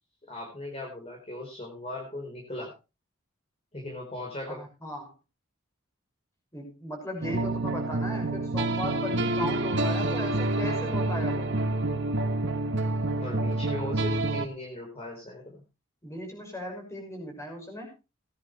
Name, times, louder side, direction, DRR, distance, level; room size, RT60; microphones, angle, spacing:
voice 1, 0.3-2.7 3.7-4.6 13.2-15.6, left 1 dB, 30° left, 0 dB, 4.5 m, -38 dB
voice 2, 4.5-5.1 6.5-11.5 16.0-17.9, left 1 dB, 15° left, 2 dB, 6.0 m, -37 dB
sound 1, 7.2-14.5, right 2 dB, 65° right, 1.4 m, -28 dB
18.5 x 10.5 x 3.3 m, 0.29 s
head